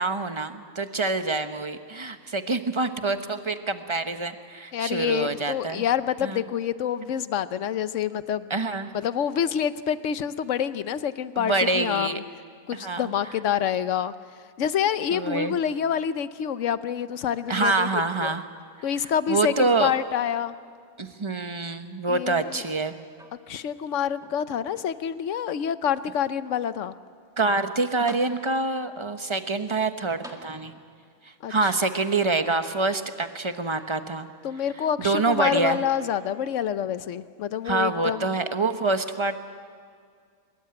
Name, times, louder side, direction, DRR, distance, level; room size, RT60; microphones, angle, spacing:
voice 1, 0.0-5.8 6.2-6.4 8.5-8.9 11.4-12.2 12.8-13.1 15.1-15.6 17.5-18.4 19.3-19.9 21.0-22.9 27.4-30.7 31.5-34.3 35.0-35.8 37.6-39.4, right 3 dB, 25° right, 8 dB, 1.0 m, -26 dB
voice 2, 4.7-8.5 8.9-12.2 12.7-14.1 14.6-18.3 18.8-20.5 22.1-22.6 23.5-27.0 31.4-31.7 34.4-38.3, left 9 dB, 60° left, 13 dB, 1.1 m, -27 dB
sound 1, 23.1-23.8 24.2-25.2 25.9-26.0 27.6-27.7 28.1-28.8 30.2-31.1 32.1-32.2, equal, ahead, 1.9 m, -48 dB
23.0 x 22.0 x 8.8 m, 2.1 s
omnidirectional pair, 1.5 m